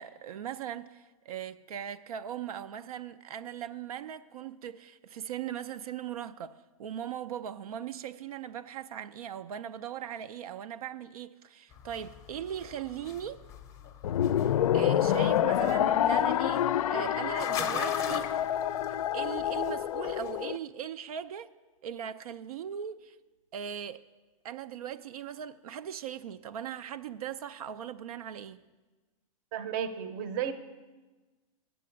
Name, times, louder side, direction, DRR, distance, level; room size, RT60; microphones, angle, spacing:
voice 1, 0.0-13.4 14.4-18.3 19.1-21.5 21.8-23.2 23.5-24.0 24.4-28.6, right 9 dB, 85° right, 0.4 m, -39 dB
sound 1, 11.7-20.4, left 8 dB, 20° left, 0.6 m, -42 dB
sound 2, 14.0-20.6, left 11 dB, 75° left, 0.4 m, -27 dB
voice 2, 29.5-30.5, right 8 dB, 35° right, 0.6 m, -33 dB
8.4 x 7.0 x 8.4 m
hypercardioid pair, 155°, 18 cm